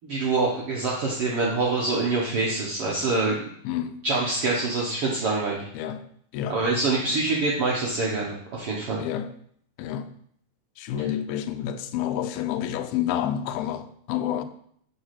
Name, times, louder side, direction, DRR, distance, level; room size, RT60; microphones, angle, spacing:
voice 1, 0.0-3.4 4.0-5.7 6.5-9.0, right 3 dB, 85° right, 1.2 m, -25 dB
voice 2, 3.6-4.0 5.7-6.0 6.3-6.6 9.0-9.3 9.8-10.1 10.8-14.4, left 10 dB, 80° left, 2.3 m, -29 dB
11.5 x 4.3 x 5.9 m
omnidirectional pair, 4.7 m